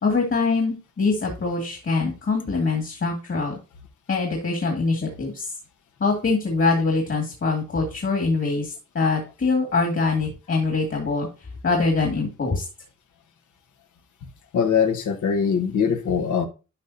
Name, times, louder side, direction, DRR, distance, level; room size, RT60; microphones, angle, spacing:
voice 1, 0.0-3.6 4.1-5.5 6.0-11.3 11.6-12.6, left 3 dB, 45° left, 1 dB, 2.2 m, -23 dB
voice 2, 14.5-16.5, left 7 dB, 90° left, 8 dB, 1.3 m, -22 dB
11.5 x 5.5 x 2.8 m, 0.30 s
wide cardioid pair, 125°, 30 cm